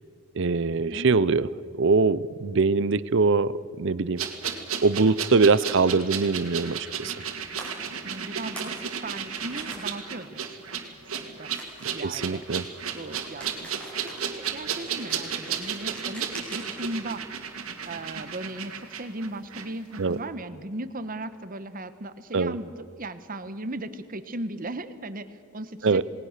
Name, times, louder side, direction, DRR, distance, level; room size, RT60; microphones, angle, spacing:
voice 1, 0.3-1.5 1.7-4.2 4.8-7.2 12.0-12.6 20.0-20.2 22.3-22.6 25.8-26.0, right 4 dB, 60° right, 18 dB, 0.6 m, -23 dB
voice 2, 0.9-1.2 8.0-11.5 11.9-12.4 12.9-13.7 14.0-17.2 17.9-26.0, right 1 dB, 40° right, 12 dB, 1.1 m, -37 dB
sound 1, 4.2-19.7 19.9-20.0, right 7 dB, 90° right, 2.3 m, -33 dB
sound 2, 7.0-7.3 7.6-7.7 8.2-8.8 9.1-9.8 11.5-16.9, right 1 dB, 5° left, 5.5 m, -44 dB
28.0 x 19.5 x 6.6 m, 2.3 s
head